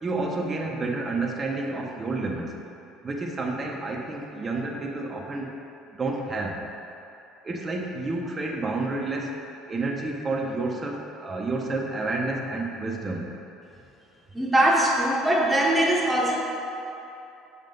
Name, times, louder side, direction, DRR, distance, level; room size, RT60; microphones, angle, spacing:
voice 1, 0.0-2.6 3.0-5.6 5.9-6.6 7.4-9.4 9.7-13.3, right 2 dB, 25° right, 0 dB, 0.7 m, -30 dB
voice 2, 14.3-16.4, right 1 dB, 10° right, -4 dB, 1.1 m, -21 dB
6.4 x 3.7 x 5.2 m, 2.8 s
supercardioid pair, 100°, 0 cm